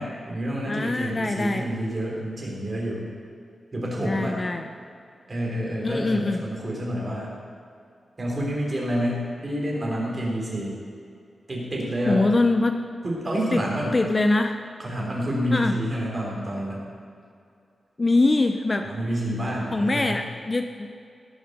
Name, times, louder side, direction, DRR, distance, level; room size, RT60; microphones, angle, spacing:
voice 1, 0.0-3.1 3.7-4.4 5.3-7.3 8.2-10.7 11.5-12.3 13.0-14.0 14.8-16.8 18.9-20.2, equal, 35° right, -3 dB, 3.7 m, -28 dB
voice 2, 0.7-1.7 4.0-4.7 5.8-6.4 12.1-12.8 13.5-13.6 13.9-14.6 15.5-15.8 18.0-18.9 19.7-20.9, left 2 dB, 25° left, 6 dB, 0.6 m, -23 dB
17.5 x 7.3 x 6.7 m, 2.4 s
wide cardioid pair, 135°, 0 cm